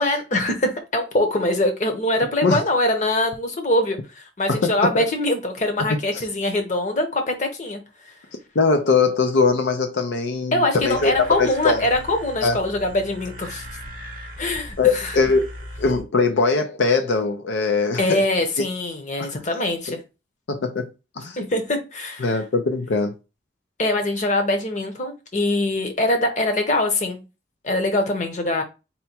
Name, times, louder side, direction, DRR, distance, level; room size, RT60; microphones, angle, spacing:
voice 1, 0.0-7.8 8.1-8.2 10.5-13.6 14.4-15.2 18.0-20.0 21.4-22.4 23.8-27.2 27.6-28.6, left 1 dB, 40° left, 0.9 m, -23 dB
voice 2, 4.5-5.0 6.1-6.2 8.6-11.9 12.4-12.6 14.8-15.4 15.8-18.2 19.2-19.3 20.5-20.9 21.2-21.4 22.2-23.1, left 4 dB, 75° left, 0.6 m, -21 dB
sound 1, 10.8-16.0, equal, 45° right, 0.7 m, -38 dB
4.2 x 2.2 x 4.3 m
head